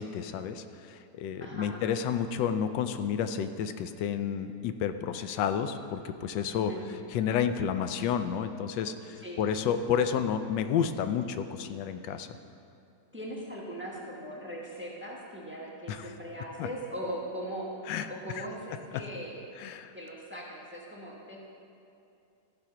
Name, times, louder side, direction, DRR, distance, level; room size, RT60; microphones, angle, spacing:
voice 1, 0.0-6.7 7.1-12.3 15.9-16.1 16.6-16.7 17.9-18.1 18.4-18.5 19.6-19.9, left 8 dB, 85° left, 10 dB, 1.2 m, -30 dB
voice 2, 1.3-1.8 6.5-6.9 9.2-9.4 13.1-17.7 18.1-19.4 19.9-21.4, equal, 10° right, -3 dB, 1.0 m, -40 dB
14.5 x 5.0 x 5.8 m, 2.6 s
omnidirectional pair, 1.9 m